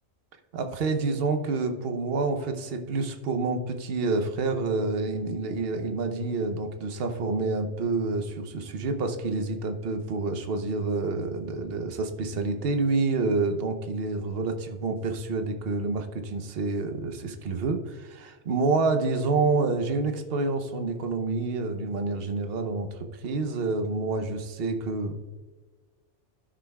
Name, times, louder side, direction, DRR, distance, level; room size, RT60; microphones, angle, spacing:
voice 1, 0.5-22.9 23.2-25.2, right 3 dB, 55° right, 6 dB, 1.0 m, -28 dB
13.0 x 6.2 x 2.3 m, 1.4 s
omnidirectional pair, 1.2 m